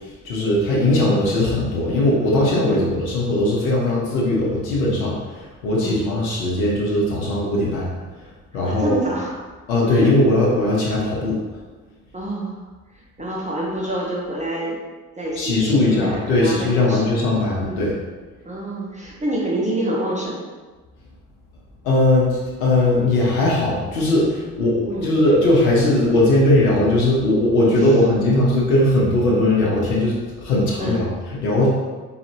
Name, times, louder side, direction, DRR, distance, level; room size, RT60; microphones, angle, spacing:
voice 1, 0.0-7.9 8.5-9.0 9.7-11.4 15.4-18.0 21.8-31.7, left 1 dB, 85° left, -5 dB, 0.9 m, -19 dB
voice 2, 8.6-9.3 9.9-10.1 12.1-12.6 12.9-14.8 15.2-17.2 17.6-17.9 18.4-20.4 24.9-25.1 27.7-28.0 30.8-31.1, right 1 dB, 15° right, -4 dB, 1.0 m, -27 dB
4.1 x 3.9 x 2.9 m, 1.3 s
hypercardioid pair, 50°, 42 cm